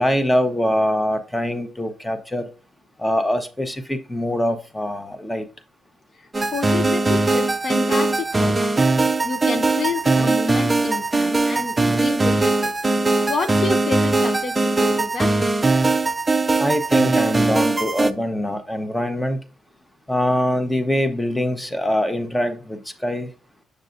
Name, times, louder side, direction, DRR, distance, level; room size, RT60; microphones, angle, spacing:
voice 1, 0.0-2.5 3.0-5.5 16.6-19.4 20.1-23.3, equal, 10° left, 0.9 m, -23 dB
sound 1, 6.3-18.1, right 3 dB, 20° right, 0.5 m, -20 dB
voice 2, 6.4-8.7 9.2-12.7 13.3-15.5, left 4 dB, 50° left, 0.7 m, -29 dB
6.6 x 6.3 x 2.6 m
cardioid pair, 90°, 0 cm